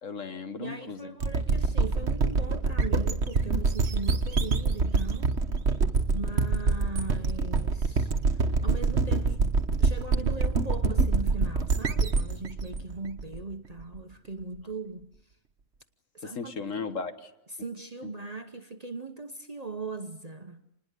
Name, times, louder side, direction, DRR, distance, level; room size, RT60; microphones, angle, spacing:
voice 1, 0.0-1.1 16.2-17.3, left 5 dB, 60° left, 1.7 m, -36 dB
voice 2, 0.6-5.3 6.1-9.4 9.8-15.1 16.1-16.9 17.6-20.6, right 3 dB, 30° right, 1.0 m, -39 dB
sound 1, 1.2-13.8, right 4 dB, 50° right, 1.5 m, -26 dB
27.0 x 20.5 x 8.3 m
omnidirectional pair, 1.5 m